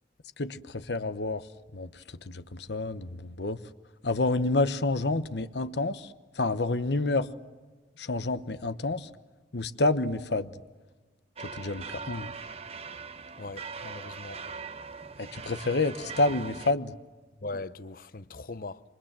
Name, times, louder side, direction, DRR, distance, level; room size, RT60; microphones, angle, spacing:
voice 1, 0.4-1.5 1.7-3.6 4.0-7.3 8.0-9.1 9.5-10.5 11.4-12.3 15.2-16.9, left 2 dB, 75° left, 1.1 m, -29 dB
sound 1, 11.4-16.7, right 5 dB, 35° right, 0.9 m, -41 dB
voice 2, 13.4-14.4 17.4-18.8, left 3 dB, 55° left, 0.9 m, -40 dB
28.0 x 25.0 x 7.6 m
head